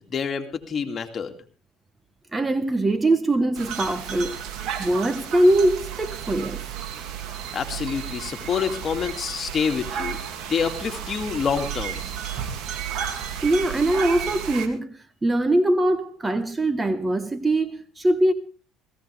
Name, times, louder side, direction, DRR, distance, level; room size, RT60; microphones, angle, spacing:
voice 1, 0.0-1.3 7.5-12.0, left 6 dB, 40° left, 2.5 m, -27 dB
voice 2, 2.3-4.4 4.8-6.6 13.4-18.3, right 1 dB, 20° right, 1.2 m, -22 dB
sound 1, 3.5-14.7, right 8 dB, 65° right, 2.4 m, -33 dB
18.0 x 15.5 x 3.4 m
supercardioid pair, 80°, 0 cm